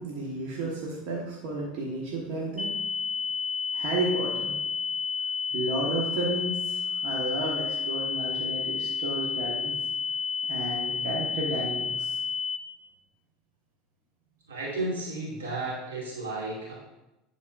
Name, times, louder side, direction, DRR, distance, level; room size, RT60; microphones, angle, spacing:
voice 1, 0.0-4.6 5.5-9.7 10.4-12.2, right 2 dB, 65° right, -4 dB, 1.4 m, -33 dB
sound 1, 2.6-12.6, left 4 dB, 25° left, 0.8 m, -31 dB
voice 2, 14.5-16.7, right 2 dB, 90° right, -5 dB, 2.3 m, -33 dB
10.5 x 4.1 x 2.5 m, 0.94 s
hypercardioid pair, 90°, 0 cm